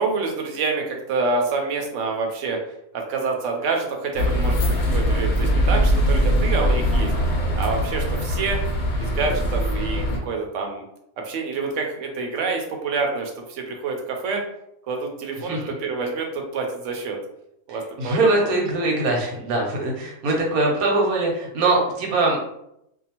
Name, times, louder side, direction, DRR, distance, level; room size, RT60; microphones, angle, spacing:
voice 1, 0.0-2.6 2.9-7.1 7.6-8.6 9.0-10.8 11.2-14.4 14.9-17.2 17.7-18.5 20.6-20.7, right 4 dB, 70° right, 2 dB, 0.9 m, -27 dB
sound 1, 4.1-10.2, equal, 65° left, 0.9 m, -21 dB
voice 2, 18.0-22.4, right 2 dB, 85° right, 0 dB, 1.2 m, -22 dB
2.6 x 2.3 x 2.8 m, 0.78 s
omnidirectional pair, 1.5 m